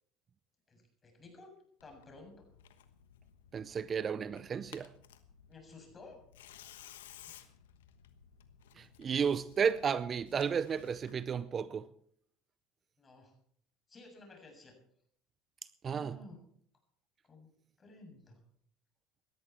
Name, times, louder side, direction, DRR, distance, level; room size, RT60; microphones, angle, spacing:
voice 1, 0.7-1.5 1.8-2.4 5.5-6.2 7.3-7.4 13.0-13.3 13.9-14.7 15.9-16.4 17.3-17.5 17.8-18.4, left 2 dB, 30° left, 7.0 m, -54 dB
Tearing, 1.8-11.4, left 10 dB, 90° left, 1.2 m, -57 dB
voice 2, 3.5-4.9 8.8-11.9 15.8-16.2, right 7 dB, 35° right, 0.6 m, -33 dB
18.0 x 13.0 x 4.6 m
hypercardioid pair, 85°, 0 cm